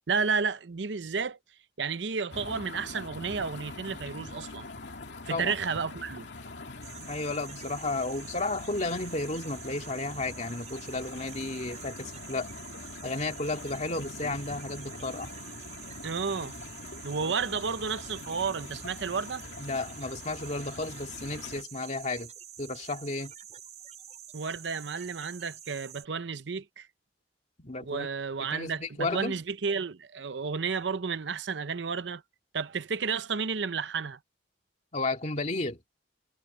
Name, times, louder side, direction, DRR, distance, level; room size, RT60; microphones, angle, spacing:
voice 1, 0.1-1.4 1.8-4.7 5.3-6.3 16.0-16.5 17.0-19.4 24.3-26.9 27.8-32.2 32.5-34.2, right 5 dB, 75° right, 0.7 m, -32 dB
sound 1, 2.3-21.6, left 3 dB, 70° left, 2.4 m, -44 dB
sound 2, 6.8-26.0, right 9 dB, 40° right, 4.9 m, -47 dB
voice 2, 6.9-12.5 13.0-15.3 17.2-17.3 19.6-22.3 22.6-23.3 27.6-28.1 28.5-29.4 34.9-35.8, left 2 dB, 40° left, 2.4 m, -33 dB
head